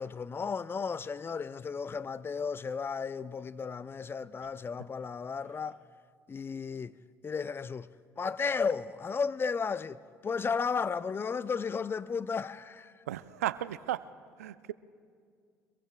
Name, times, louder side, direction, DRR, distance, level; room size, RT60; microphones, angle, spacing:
voice 1, 0.0-5.8 6.3-6.9 7.2-7.9 8.2-12.9, left 5 dB, 30° left, 0.5 m, -34 dB
voice 2, 13.1-14.0 14.4-14.7, right 13 dB, 85° right, 0.4 m, -34 dB
25.0 x 22.5 x 2.3 m
hypercardioid pair, 60°, 8 cm